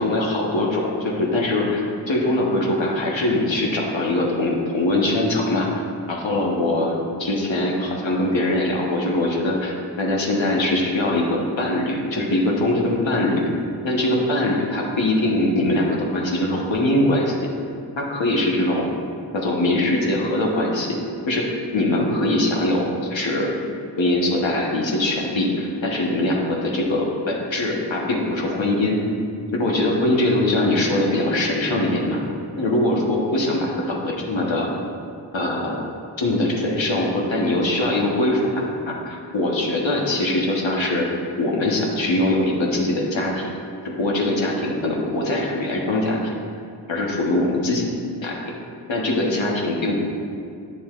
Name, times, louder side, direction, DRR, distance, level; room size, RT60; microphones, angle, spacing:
voice 1, 0.0-5.7 6.1-13.5 13.8-17.3 18.0-18.9 19.3-21.0 21.3-21.4 21.7-23.5 24.0-29.0 29.5-32.2 32.6-34.7 35.3-35.8 36.2-41.1 41.4-43.5 44.0-46.2 46.9-47.8 48.2-48.3 48.9-50.0, left 1 dB, 75° left, -2 dB, 1.2 m, -22 dB
8.6 x 6.9 x 2.5 m, 2.3 s
cardioid pair, 40°, 46 cm